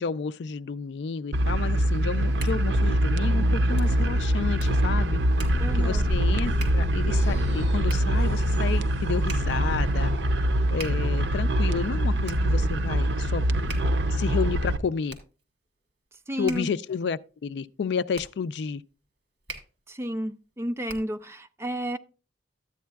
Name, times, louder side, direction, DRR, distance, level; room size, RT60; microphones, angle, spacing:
voice 1, 0.0-5.2 5.7-10.1 10.7-13.4 14.1-15.2 16.4-18.8, left 6 dB, 70° left, 0.4 m, -31 dB
sound 1, 1.3-14.8, right 1 dB, 80° right, 0.6 m, -24 dB
Hands, 2.0-21.3, right 4 dB, 60° right, 1.9 m, -47 dB
sound 2, 5.4-9.3, right 1 dB, 40° left, 4.0 m, -34 dB
voice 2, 5.6-6.0 16.3-16.7 19.9-22.0, equal, 15° right, 0.4 m, -31 dB
12.5 x 8.4 x 2.3 m
head